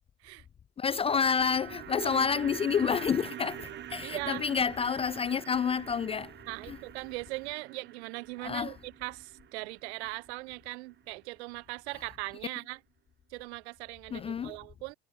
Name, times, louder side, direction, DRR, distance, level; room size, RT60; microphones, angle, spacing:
voice 1, 0.8-6.3 6.7-6.8 8.4-8.7 14.1-14.6, left 6 dB, 15° left, 0.6 m, -29 dB
sound 1, 1.0-11.3 11.6-11.7, right 12 dB, 30° right, 1.9 m, -46 dB
voice 2, 4.0-4.5 6.5-12.8 13.3-14.9, right 23 dB, 70° right, 2.3 m, -40 dB
supercardioid pair, 135°, 35 cm